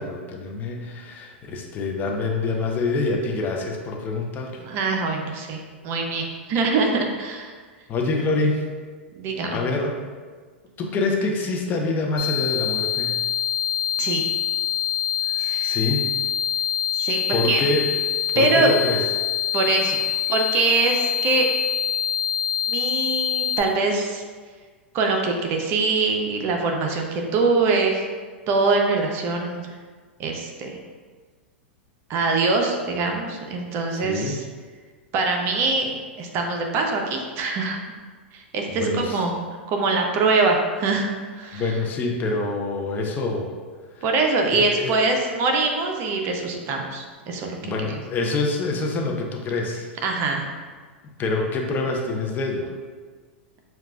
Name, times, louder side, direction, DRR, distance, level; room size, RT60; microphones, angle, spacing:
voice 1, 0.0-4.6 7.9-8.6 9.5-10.0 10.8-13.2 15.2-16.1 17.3-17.9 18.3-19.0 34.0-34.4 38.7-39.2 41.5-43.5 43.9-44.1 44.5-45.0 47.6-49.9 51.2-52.7, left 3 dB, 30° left, 1 dB, 0.5 m, -26 dB
voice 2, 4.6-7.5 9.1-9.6 14.0-14.3 15.4-15.7 16.9-17.6 18.4-18.7 19.5-20.0 20.3-21.5 22.7-24.2 24.9-28.1 28.5-29.8 30.2-30.8 32.1-34.4 35.1-37.8 38.3-39.3 39.7-41.1 41.4-41.6 44.0-48.0 50.0-50.5, right 3 dB, 40° right, 2 dB, 0.6 m, -23 dB
sound 1, 12.2-23.6, left 10 dB, 55° left, 1.1 m, -25 dB
6.4 x 2.3 x 2.3 m, 1.5 s
figure-of-eight pair, 95°, 6 cm